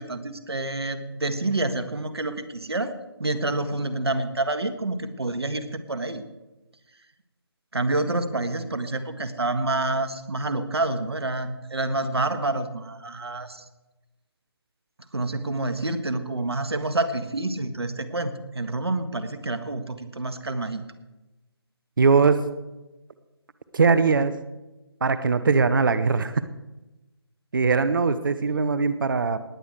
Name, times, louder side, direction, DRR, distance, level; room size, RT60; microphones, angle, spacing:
voice 1, 0.0-2.9 3.2-6.2 7.7-13.6 15.1-20.8, right 2 dB, 75° right, 10 dB, 1.6 m, -28 dB
voice 2, 22.0-22.4 23.7-24.3 25.0-26.4 27.5-29.4, right 4 dB, 50° right, 12 dB, 0.8 m, -20 dB
19.5 x 8.2 x 4.8 m, 1.1 s
figure-of-eight pair, 150°, 14 cm